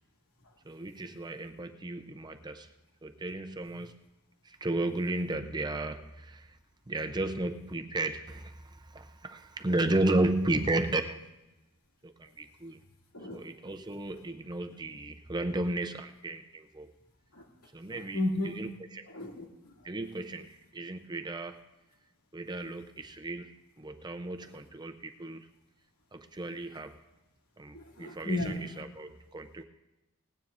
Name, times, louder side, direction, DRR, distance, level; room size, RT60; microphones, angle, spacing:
voice 1, 0.7-2.7 3.0-4.0 4.4-6.5 6.9-11.2 12.0-12.8 13.3-16.9 17.7-19.1 19.8-21.6 22.3-25.5 26.1-27.0 27.6-29.6, right 2 dB, 20° right, 7 dB, 0.6 m, -34 dB
voice 2, 17.9-18.6 19.1-19.7 27.7-28.6, left 1 dB, 75° left, 0 dB, 2.5 m, -34 dB
18.5 x 16.5 x 2.6 m, 1.0 s
head